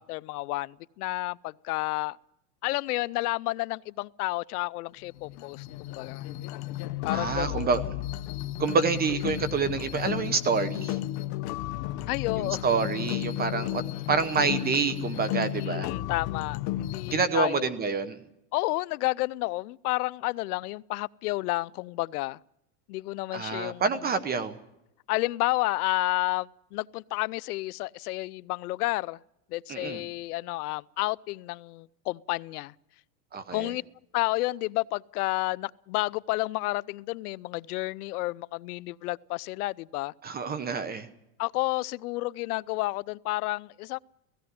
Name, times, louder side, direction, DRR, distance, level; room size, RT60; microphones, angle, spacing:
voice 1, 0.0-2.2 2.6-6.3 7.0-7.7 12.1-12.7 13.6-14.1 15.6-17.7 18.5-22.4 22.9-23.8 25.1-29.2 29.5-32.7 33.5-33.8 34.1-40.1 41.4-44.0, left 20 dB, 70° left, 0.6 m, -31 dB
sound 1, 5.1-17.3, left 14 dB, 40° left, 0.7 m, -33 dB
voice 2, 7.1-7.8 8.6-11.0 12.4-13.8 14.1-15.9 17.1-18.2 23.3-24.6 29.7-30.0 33.3-33.7 40.2-41.1, right 5 dB, 20° right, 0.8 m, -27 dB
17.0 x 16.5 x 9.3 m
supercardioid pair, 140°, 47 cm